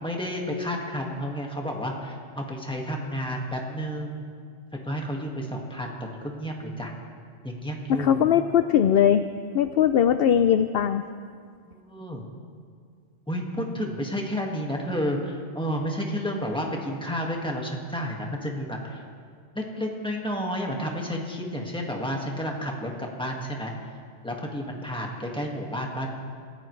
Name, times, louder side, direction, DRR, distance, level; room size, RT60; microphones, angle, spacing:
voice 1, 0.0-4.2 4.7-6.9 7.4-8.3 11.7-12.2 13.3-19.0 19.6-23.7 24.2-26.1, equal, 5° left, 0 dB, 1.8 m, -31 dB
voice 2, 8.0-9.3 9.5-11.0, left 9 dB, 60° left, 10 dB, 0.7 m, -20 dB
26.5 x 15.0 x 3.3 m, 2.1 s
omnidirectional pair, 1.2 m